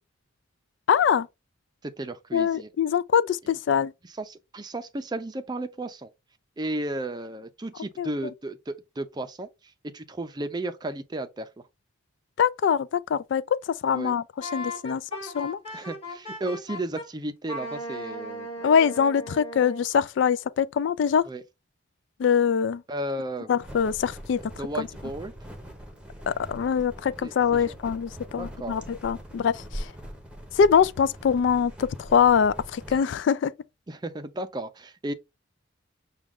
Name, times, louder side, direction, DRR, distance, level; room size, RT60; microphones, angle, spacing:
voice 1, 0.9-1.3 2.3-3.9 8.0-8.1 12.4-15.6 18.6-21.3 22.2-22.8 23.5-24.4 24.8-24.9 26.3-29.9 30.6-33.5, left 7 dB, 65° left, 0.3 m, -23 dB
voice 2, 1.8-2.7 4.0-6.1 6.6-9.5 9.8-11.5 13.9-14.1 15.7-18.5 21.3-21.4 22.9-23.5 24.6-25.3 27.2-27.8 28.4-28.8 33.9-35.1, right 1 dB, 20° right, 0.4 m, -34 dB
Wind instrument woodwind instrument, 14.4-17.1 17.5-19.9, equal, 30° left, 2.2 m, -37 dB
sound 1, 23.6-33.0, equal, 5° right, 0.8 m, -42 dB
6.1 x 2.3 x 3.5 m
head